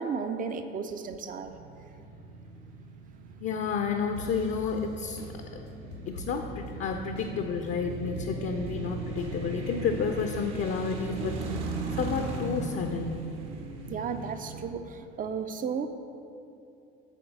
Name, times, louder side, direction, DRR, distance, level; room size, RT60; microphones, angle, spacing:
voice 1, 0.0-1.5 13.9-15.9, right 6 dB, 30° right, 9 dB, 0.5 m, -34 dB
sound 1, 1.5-14.7, right 3 dB, 55° right, 1.0 m, -38 dB
voice 2, 3.4-5.2 5.5-5.7 6.1-11.4 12.0-13.3, left 5 dB, 40° left, 4 dB, 0.6 m, -31 dB
sound 2, 4.2-7.4 7.7-7.8 8.1-8.7 9.2-9.7 10.2-11.9, left 2 dB, 85° left, 0.9 m, -45 dB
7.9 x 4.5 x 6.2 m, 2.6 s
figure-of-eight pair, 60°, 30 cm